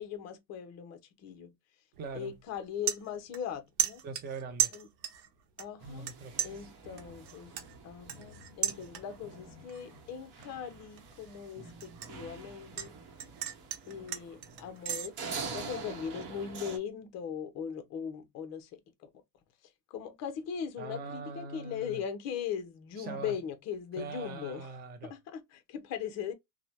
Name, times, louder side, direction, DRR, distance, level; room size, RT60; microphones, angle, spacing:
voice 1, 0.0-1.5 2.1-4.0 4.7-4.9 5.6-6.1 6.4-7.5 7.8-12.9 13.9-19.1 19.6-24.7 25.0-26.3, left 8 dB, 35° left, 0.6 m, -39 dB
sound 1, 1.9-2.2 2.5-3.5 3.8-5.3 5.6-6.1 6.4-9.3 9.7-10.0 10.4-12.9 13.2-15.1, right 10 dB, 75° right, 1.0 m, -35 dB
voice 2, 2.0-2.3 4.0-4.7 5.8-6.7 20.8-22.0 23.0-23.3 24.0-25.1, right 4 dB, 20° right, 0.5 m, -42 dB
sound 2, 5.8-16.8, right 4 dB, 45° right, 0.9 m, -46 dB
2.7 x 2.1 x 3.1 m
supercardioid pair, 135°, 49 cm